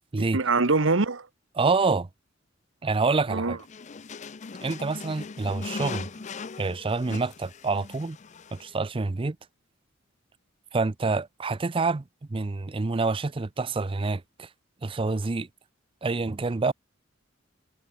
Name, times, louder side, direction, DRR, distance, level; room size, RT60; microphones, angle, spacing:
voice 1, 0.2-1.3 3.3-3.6, right 3 dB, 90° right, 1.3 m, -24 dB
voice 2, 1.5-2.1 2.8-3.6 4.6-6.1 6.6-8.2 8.5-9.4 10.7-14.5 14.8-15.5 16.0-16.7, right 3 dB, 25° right, 0.5 m, -27 dB
sound 1, 3.6-8.7, left 4 dB, 40° left, 0.5 m, -39 dB
head